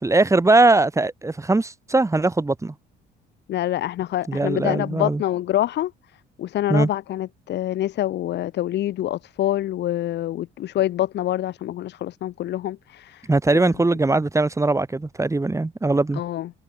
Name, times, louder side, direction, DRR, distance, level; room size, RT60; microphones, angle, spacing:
voice 1, 0.0-2.7 4.3-5.2 6.7-6.9 13.3-16.2, right 2 dB, 15° right, 1.1 m, -20 dB
voice 2, 3.5-5.9 6.4-13.3 13.5-13.6 16.1-16.5, left 13 dB, 55° left, 0.5 m, -26 dB
supercardioid pair, 70°, 21 cm